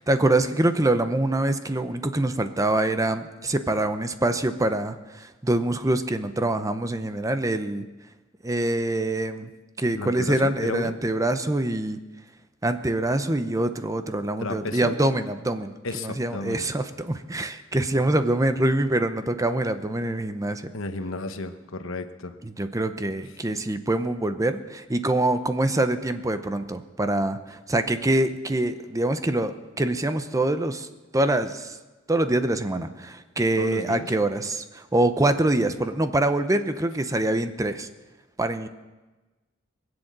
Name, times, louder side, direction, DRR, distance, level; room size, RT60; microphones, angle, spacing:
voice 1, 0.0-7.9 8.4-9.5 9.8-12.0 12.6-20.7 22.4-30.9 31.1-31.8 32.1-37.9 38.4-38.7, right 1 dB, 15° right, 10 dB, 0.7 m, -25 dB
voice 2, 9.9-10.9 14.4-15.0 15.8-16.7 20.7-22.4 33.6-34.1, left 2 dB, 85° left, 9 dB, 1.1 m, -33 dB
21.0 x 8.0 x 7.4 m, 1.2 s
head